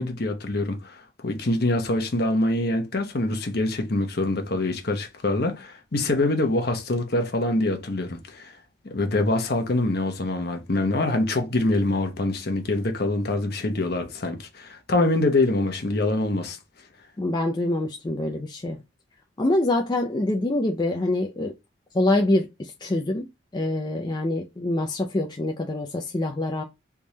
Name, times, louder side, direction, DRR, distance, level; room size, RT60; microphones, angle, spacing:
voice 1, 0.0-8.5 8.8-16.6, left 2 dB, 50° left, 0.8 m, -25 dB
voice 2, 17.2-18.8 19.4-21.5 21.9-23.3 23.5-26.6, left 1 dB, 20° left, 0.4 m, -25 dB
3.5 x 3.1 x 2.7 m
head